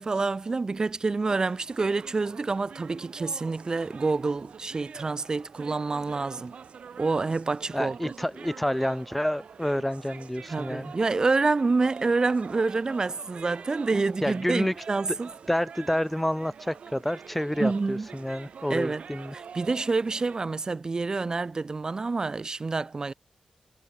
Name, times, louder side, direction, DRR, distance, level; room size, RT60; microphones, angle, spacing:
voice 1, 0.0-6.5 7.0-8.1 10.5-15.3 17.6-18.1 18.7-19.0 19.3-23.1, right 3 dB, 35° right, 3.7 m, -27 dB
sound 1, 1.3-20.4, right 6 dB, 70° right, 4.7 m, -46 dB
voice 2, 7.7-10.9 14.2-14.8 15.5-19.3, left 1 dB, 5° left, 3.1 m, -29 dB
wide cardioid pair, 110°, 2 cm